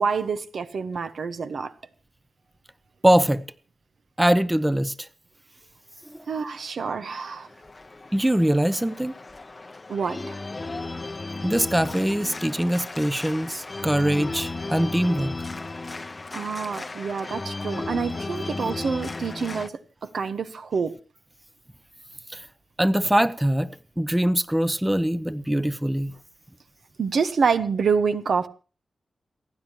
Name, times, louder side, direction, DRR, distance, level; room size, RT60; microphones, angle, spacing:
voice 1, 0.0-1.7 6.3-7.5 9.9-10.4 16.3-19.7 20.0-20.9 27.0-28.5, right 5 dB, 75° right, 1.1 m, -27 dB
voice 2, 3.0-3.4 4.2-4.9 6.1-6.2 8.1-9.1 11.4-15.3 22.3-22.4 22.8-23.7 24.0-26.1, right 1 dB, 10° right, 0.7 m, -22 dB
Organ, 6.5-19.7, left 3 dB, 30° left, 0.7 m, -35 dB
28.5 x 10.0 x 3.0 m
wide cardioid pair, 105°, 0 cm